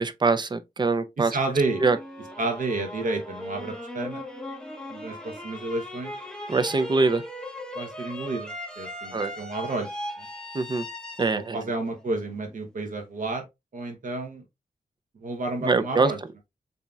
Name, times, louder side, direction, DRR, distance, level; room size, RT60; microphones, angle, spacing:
voice 1, 0.0-1.4 1.8-2.0 6.5-7.2 9.1-9.3 10.5-10.9 11.2-11.6 15.6-16.1, right 3 dB, 30° right, 0.5 m, -23 dB
voice 2, 1.2-1.8 2.4-4.2 4.9-6.1 7.7-9.9 10.2-10.3 11.3-13.5 13.7-14.4 15.2-16.2, right 2 dB, 60° right, 0.9 m, -31 dB
sound 1, 1.5-12.5, left 1 dB, 5° left, 0.8 m, -38 dB
7.0 x 2.8 x 2.3 m
wide cardioid pair, 165°, 15 cm